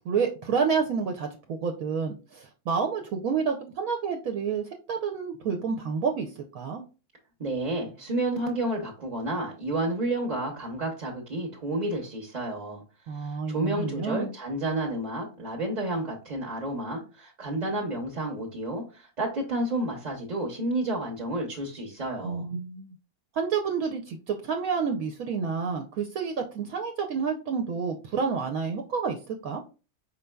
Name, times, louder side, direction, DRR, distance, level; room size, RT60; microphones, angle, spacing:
voice 1, 0.1-6.8 13.1-14.3 22.2-22.9 23.3-29.6, right 5 dB, 70° right, 3 dB, 1.0 m, -29 dB
voice 2, 7.4-12.8 13.1-22.5, right 1 dB, 35° right, -1 dB, 0.8 m, -31 dB
5.2 x 4.4 x 2.2 m, 0.33 s
omnidirectional pair, 1.6 m